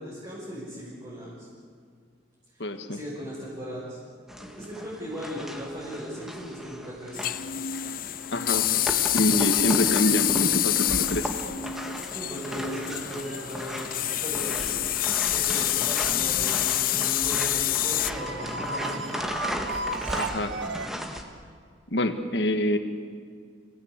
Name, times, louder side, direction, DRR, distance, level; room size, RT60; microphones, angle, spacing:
voice 1, 0.0-1.5 2.5-4.0 4.3-7.3 12.1-14.9 15.3-19.3, equal, 25° right, -7 dB, 6.6 m, -38 dB
voice 2, 2.6-3.0 8.3-8.8 9.1-11.3 20.2-20.5 21.9-22.8, left 1 dB, 70° left, 7 dB, 1.7 m, -26 dB
sound 1, 4.3-21.2, equal, ahead, 1.9 m, -36 dB
sound 2, 7.1-18.1, left 13 dB, 50° left, 0.6 m, -27 dB
sound 3, 9.8-20.9, right 2 dB, 85° right, 1.5 m, -39 dB
29.0 x 18.0 x 8.4 m, 2.1 s
head